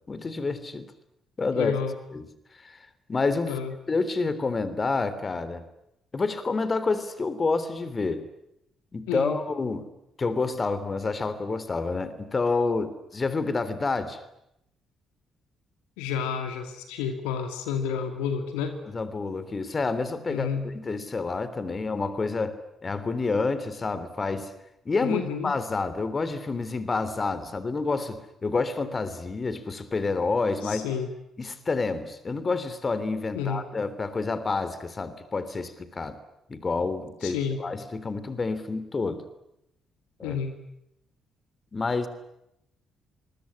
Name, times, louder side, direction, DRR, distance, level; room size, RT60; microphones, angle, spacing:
voice 1, 0.1-0.9 1.4-1.7 2.1-2.3 2.6-2.8 3.1-3.5 3.9-5.6 6.1-8.2 8.9-9.9 10.2-14.2 18.9-20.5 20.7-24.5 24.8-30.9 31.4-36.2 36.5-39.2 40.2-40.4 41.7-42.1, left 3 dB, 35° left, 13 dB, 3.3 m, -28 dB
voice 2, 1.5-2.0 3.5-3.8 9.1-9.4 16.0-18.8 20.3-20.6 25.0-25.6 30.6-31.1 33.3-33.7 37.2-37.6 40.2-40.6, left 7 dB, 70° left, 7 dB, 2.3 m, -30 dB
26.5 x 22.5 x 10.0 m, 0.83 s
figure-of-eight pair, 45°, 0 cm